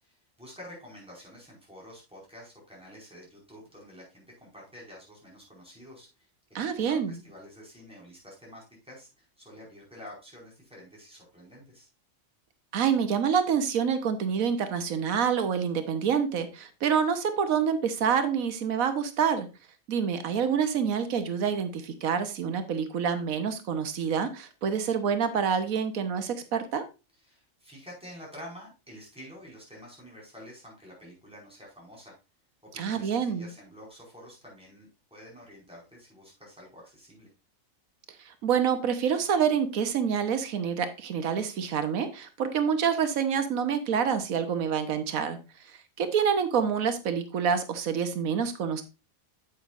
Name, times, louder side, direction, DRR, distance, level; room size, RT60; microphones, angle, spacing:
voice 1, 0.0-6.1 6.6-11.9 27.2-32.1 32.7-37.3, equal, 5° right, -4 dB, 5.0 m, -48 dB
voice 2, 6.5-7.1 12.7-19.5 19.9-26.8 32.7-33.5 38.2-45.4 45.7-48.8, right 7 dB, 90° right, 9 dB, 1.4 m, -27 dB
8.7 x 8.2 x 2.5 m, 0.29 s
omnidirectional pair, 1.4 m